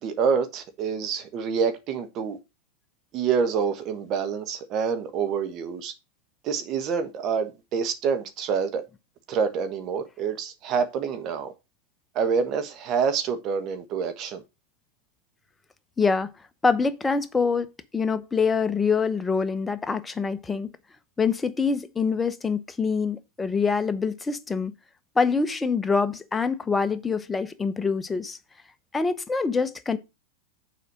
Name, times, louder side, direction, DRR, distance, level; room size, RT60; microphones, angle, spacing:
voice 1, 0.0-2.4 3.1-5.9 6.4-8.8 9.3-11.5 12.1-14.4, right 6 dB, 40° right, 1.3 m, -27 dB
voice 2, 16.0-16.3 16.6-17.7 17.9-20.7 21.2-24.7 25.2-28.4 28.9-30.0, left 5 dB, 15° left, 0.9 m, -25 dB
6.9 x 4.9 x 6.0 m
hypercardioid pair, 95°, 0 cm